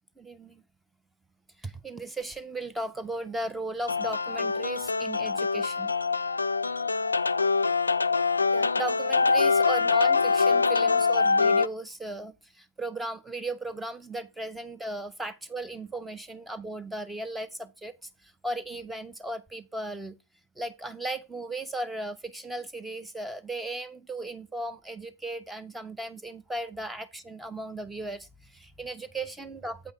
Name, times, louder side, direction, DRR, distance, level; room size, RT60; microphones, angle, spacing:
voice 1, 0.2-0.6 1.6-5.9 8.5-18.0 18.2-20.1 20.6-29.9, right 2 dB, 10° right, 0.8 m, -36 dB
sound 1, 3.9-11.7, left 4 dB, 80° left, 0.3 m, -24 dB
8.0 x 5.2 x 4.4 m
figure-of-eight pair, 90°, 0 cm